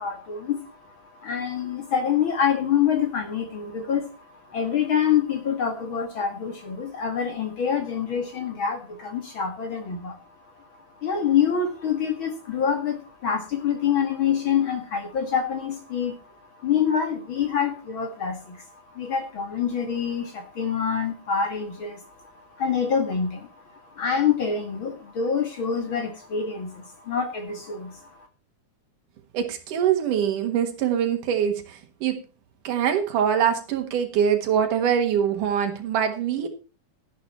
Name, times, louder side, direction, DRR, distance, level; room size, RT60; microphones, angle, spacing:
voice 1, 0.0-10.2 10.5-10.7 11.0-28.3, left 7 dB, 45° left, 6 dB, 2.2 m, -26 dB
voice 2, 29.3-32.1 32.6-36.5, right 8 dB, 80° right, 6 dB, 3.0 m, -23 dB
12.0 x 11.0 x 4.2 m, 0.33 s
omnidirectional pair, 3.6 m